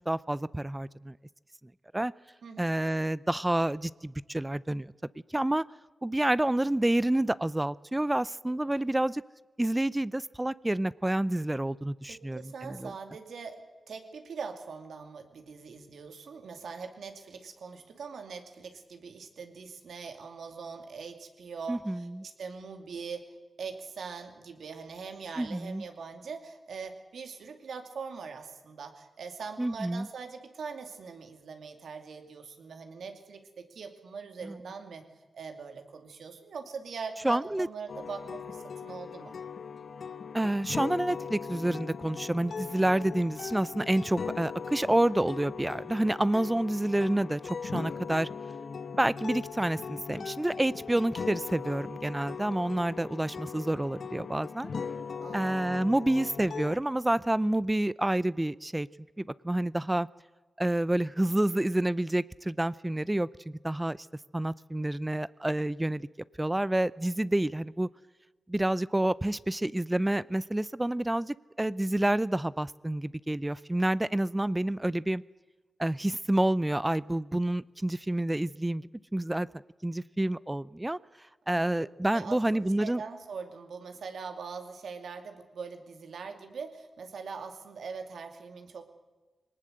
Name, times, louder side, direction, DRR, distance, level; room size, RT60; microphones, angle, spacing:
voice 1, 0.1-1.1 1.9-2.1 2.6-4.9 5.3-5.6 6.0-9.2 9.6-12.9 21.7-22.2 25.4-25.8 29.6-30.1 34.4-34.5 37.2-37.7 40.3-48.3 49.0-54.7 55.3-58.9 59.2-60.1 60.6-64.1 64.3-66.1 66.4-67.9 68.5-75.2 75.8-78.8 79.1-79.5 79.8-81.0 81.5-83.0, right 1 dB, 15° right, 19 dB, 0.6 m, -28 dB
voice 2, 12.1-23.2 23.6-35.0 35.3-39.4 55.2-55.7 81.5-88.9, right 5 dB, 80° right, 6 dB, 2.5 m, -42 dB
sound 1, 37.9-56.8, left 6 dB, 70° left, 1.1 m, -39 dB
21.5 x 19.0 x 8.0 m, 1.2 s
cardioid pair, 45°, 0 cm